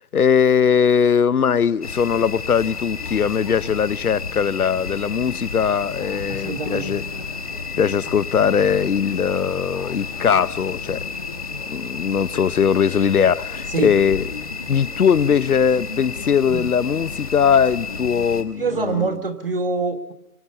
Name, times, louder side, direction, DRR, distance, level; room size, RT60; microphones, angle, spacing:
voice 1, 0.1-7.0 7.8-11.1 11.7-14.3 14.7-19.1, left 7 dB, 75° left, 0.7 m, -20 dB
sound 1, 1.8-18.4, left 5 dB, 25° left, 1.1 m, -32 dB
voice 2, 6.3-7.2 13.7-14.0 16.5-16.7 18.6-20.1, right 4 dB, 40° right, 1.3 m, -25 dB
25.5 x 24.0 x 5.6 m
figure-of-eight pair, 165°, 45 cm